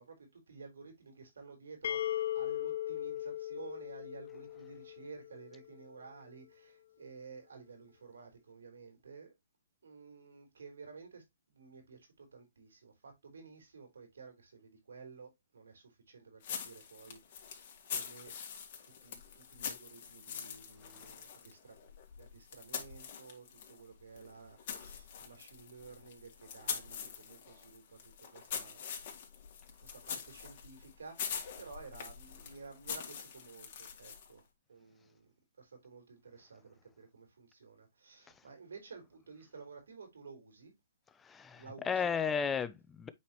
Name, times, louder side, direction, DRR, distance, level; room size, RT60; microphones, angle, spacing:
voice 1, 0.0-9.3 9.8-18.3 18.8-21.8 22.1-28.8 29.8-34.4 34.7-35.3 35.6-40.7 41.5-42.5, right 4 dB, 85° right, 4.0 m, -53 dB
sound 1, 1.8-5.6, left 12 dB, 65° left, 0.7 m, -38 dB
sound 2, 16.4-23.8 24.1-34.4, left 7 dB, 50° left, 2.5 m, -44 dB
voice 2, 41.2-43.1, left 6 dB, 15° left, 0.6 m, -34 dB
8.5 x 4.8 x 2.9 m
hypercardioid pair, 145°, 0 cm